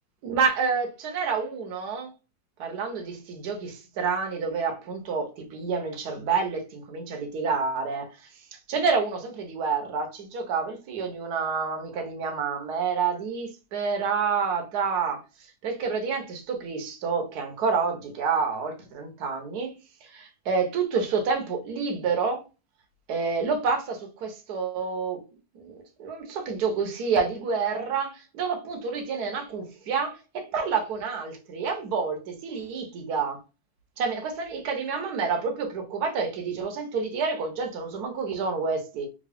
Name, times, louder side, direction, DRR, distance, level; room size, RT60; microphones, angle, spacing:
voice 1, 0.2-2.1 2.6-8.1 8.5-15.2 15.6-19.7 20.0-22.4 23.1-25.2 25.5-33.4 34.0-39.1, right 5 dB, 60° right, 1.4 m, -28 dB
3.7 x 3.0 x 3.5 m
omnidirectional pair, 2.0 m